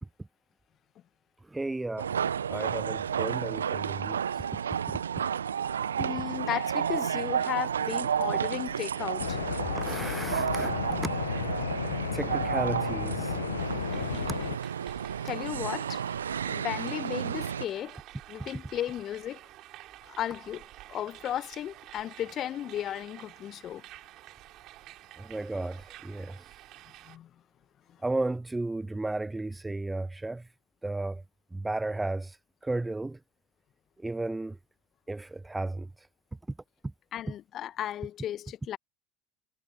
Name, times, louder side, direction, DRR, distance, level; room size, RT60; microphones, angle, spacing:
voice 1, 1.5-2.1 2.5-4.2 4.5-4.6 9.7-11.1 12.1-13.4 25.2-26.4 28.0-30.4 30.8-31.2 31.5-32.4 32.6-33.2 34.0-34.6 35.1-35.9, right 2 dB, 10° right, 0.3 m, -33 dB
sound 1, 2.0-17.7, right 8 dB, 75° right, 0.7 m, -31 dB
voice 2, 6.0-9.4 15.2-16.0 16.4-18.0 18.3-19.4 20.0-23.8 27.1-27.3 37.1-38.8, left 11 dB, 40° left, 1.2 m, -35 dB
sound 2, 9.2-14.6, left 10 dB, 70° left, 0.9 m, -34 dB
sound 3, 13.6-27.2, right 15 dB, 50° right, 5.3 m, -49 dB
figure-of-eight pair, 70°, 0 cm